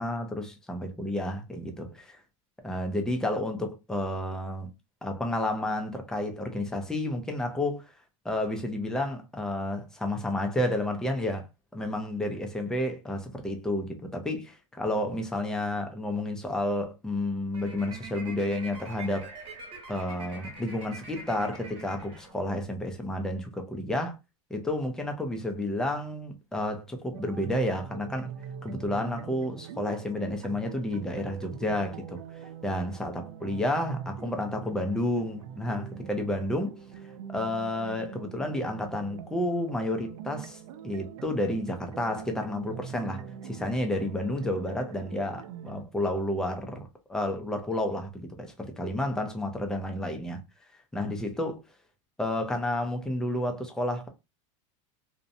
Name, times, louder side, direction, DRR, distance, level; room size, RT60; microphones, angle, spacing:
voice 1, 0.0-2.2 2.6-4.7 5.0-7.9 8.2-11.5 11.7-19.3 19.9-24.2 24.5-28.3 28.6-32.2 32.6-36.8 37.3-40.6 40.8-50.4 50.9-51.6 52.2-54.1, left 1 dB, 5° left, 0.4 m, -31 dB
sound 1, 17.5-22.8, right 2 dB, 35° right, 1.0 m, -44 dB
sound 2, 27.1-45.8, right 8 dB, 80° right, 0.4 m, -43 dB
2.6 x 2.0 x 2.6 m
supercardioid pair, 155°, 17 cm